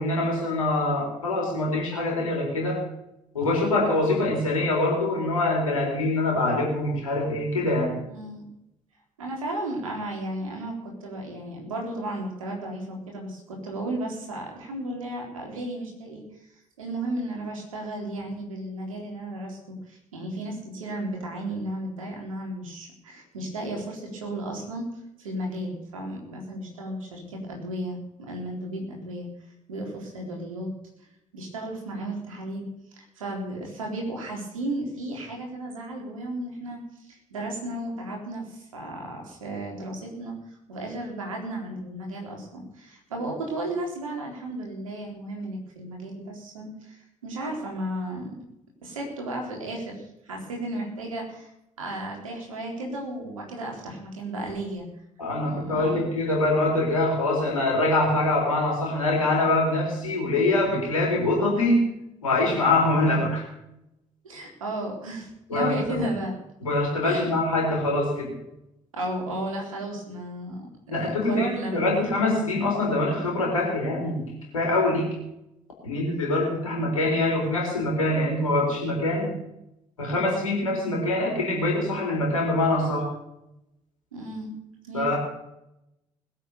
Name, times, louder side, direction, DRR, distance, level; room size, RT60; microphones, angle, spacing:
voice 1, 0.0-2.8 3.3-7.9 55.2-61.9 62.2-63.4 65.5-66.0 66.6-68.3 70.9-74.2 74.5-75.1 75.8-79.4 80.0-83.1 84.9-85.2, left 2 dB, 80° left, -1 dB, 4.3 m, -24 dB
voice 2, 8.1-8.4 9.2-16.3 16.8-24.9 25.2-29.3 29.7-30.7 31.3-32.7 32.9-48.3 48.8-51.5 51.8-54.9 55.4-56.0 63.1-63.2 64.2-66.3 67.0-67.3 68.9-71.9 72.1-72.2 84.1-84.5 84.8-85.2, right 1 dB, 80° right, 0 dB, 3.9 m, -34 dB
20.5 x 8.4 x 7.0 m, 0.84 s
figure-of-eight pair, 45°, 17 cm